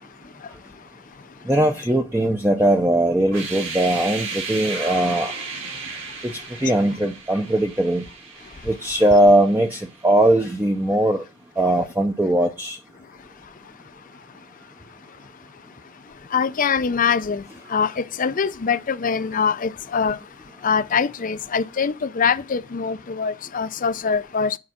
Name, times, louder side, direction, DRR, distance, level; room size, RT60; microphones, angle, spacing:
voice 1, 1.5-5.3 6.2-6.3 6.6-8.0 8.7-11.2 11.6-12.8, right 1 dB, 10° right, 0.7 m, -19 dB
sound 1, 3.2-10.1, right 4 dB, 75° right, 5.6 m, -34 dB
voice 2, 16.3-17.4 17.7-20.2 20.6-24.6, left 6 dB, 40° left, 0.5 m, -23 dB
9.6 x 4.7 x 7.5 m
head